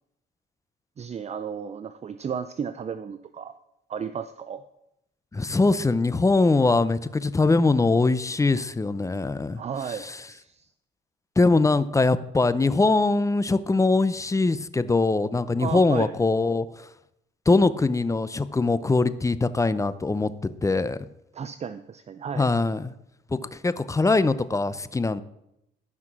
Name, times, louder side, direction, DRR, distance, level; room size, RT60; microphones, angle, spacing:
voice 1, 1.0-3.6 3.9-4.6 9.6-10.7 15.6-16.1 21.3-22.5, right 7 dB, 35° right, 12 dB, 0.5 m, -34 dB
voice 2, 5.3-10.2 11.4-16.9 17.5-21.0 22.4-22.9 23.3-25.2, left 3 dB, 15° left, 15 dB, 0.5 m, -22 dB
12.0 x 5.9 x 6.0 m, 0.84 s
cardioid pair, 90°, 20 cm